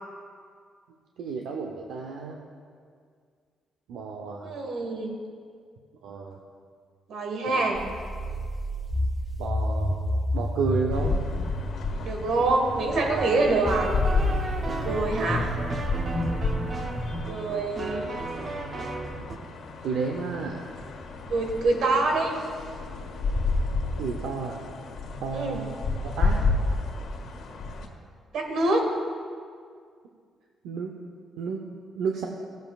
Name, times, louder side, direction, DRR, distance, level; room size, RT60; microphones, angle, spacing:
voice 1, 1.2-2.4 3.9-4.5 6.0-6.4 7.4-7.7 9.4-9.9 10.3-11.2 14.6-15.2 19.8-20.6 24.0-24.6 25.2-26.4 27.8-27.9 30.6-30.9 31.4-31.6 31.9-32.3, right 5 dB, 90° right, 1 dB, 0.7 m, -32 dB
voice 2, 4.4-5.2 7.1-7.8 12.0-13.9 14.8-15.5 17.3-18.1 21.3-22.3 25.3-25.6 28.3-28.9, right 2 dB, 75° right, 2 dB, 1.4 m, -25 dB
sound 1, 7.8-17.2, equal, 10° left, 0.8 m, -31 dB
sound 2, 10.9-27.9, left 3 dB, 70° left, 1.7 m, -31 dB
sound 3, 12.9-19.4, right 3 dB, 40° right, 0.8 m, -34 dB
15.5 x 7.7 x 2.4 m, 2.1 s
cardioid pair, 100°, 0 cm